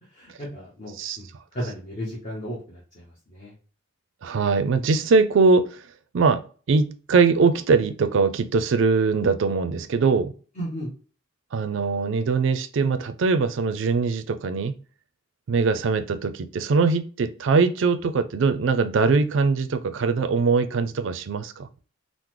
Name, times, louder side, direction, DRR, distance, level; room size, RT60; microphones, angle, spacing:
voice 1, 0.1-3.5 10.6-10.9, equal, 35° left, 0.9 m, -35 dB
voice 2, 4.2-5.8 6.1-6.4 6.7-10.3 11.5-14.7 15.5-21.7, right 4 dB, 70° right, 0.4 m, -22 dB
3.7 x 2.0 x 2.9 m
head